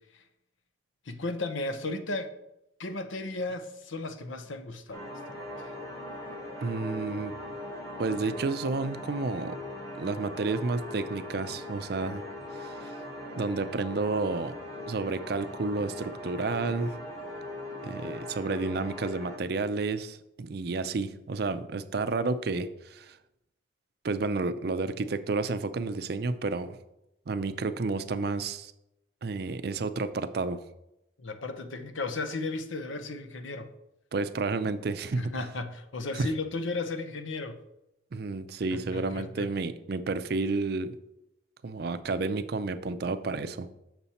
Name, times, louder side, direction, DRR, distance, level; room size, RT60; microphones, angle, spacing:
voice 1, 1.0-2.3 2.8-5.7 31.2-33.7 35.2-37.6 38.7-39.5, left 3 dB, 80° left, 9 dB, 0.7 m, -35 dB
sound 1, 4.9-19.4, left 1 dB, 15° left, 1.3 m, -40 dB
voice 2, 6.6-7.3 8.0-9.6 10.0-12.2 12.5-13.0 13.3-14.5 14.9-16.9 17.8-23.2 24.0-26.8 27.3-28.7 29.2-30.6 34.1-35.3 36.2-36.3 38.1-40.9 41.6-43.7, right 3 dB, 55° right, 11 dB, 0.4 m, -31 dB
7.0 x 6.0 x 4.2 m, 0.86 s
head